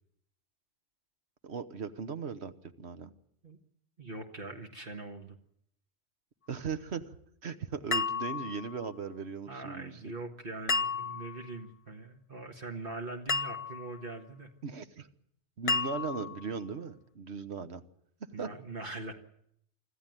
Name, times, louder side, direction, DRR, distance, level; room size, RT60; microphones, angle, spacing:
voice 1, 1.4-2.5 2.8-3.1 6.5-7.0 7.4-9.9 14.6-15.1 15.6-17.8 18.4-18.5, right 5 dB, 80° right, 10 dB, 1.5 m, -38 dB
voice 2, 4.0-5.4 9.5-14.5 18.3-19.1, right 2 dB, 55° right, 4 dB, 1.8 m, -42 dB
sound 1, 7.9-8.8 10.7-11.4 13.3-14.0 15.7-16.5, left 4 dB, 35° left, 1.0 m, -32 dB
26.0 x 13.5 x 9.1 m, 0.72 s
omnidirectional pair, 1.1 m